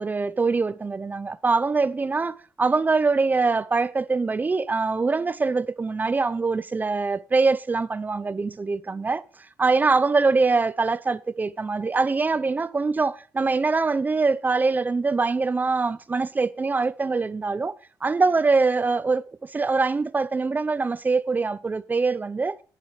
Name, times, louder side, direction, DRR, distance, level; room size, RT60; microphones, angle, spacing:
voice 1, 0.0-9.2 9.6-22.6, right 4 dB, 20° right, 0.7 m, -23 dB
12.5 x 10.5 x 5.1 m
cardioid pair, 125°, 8 cm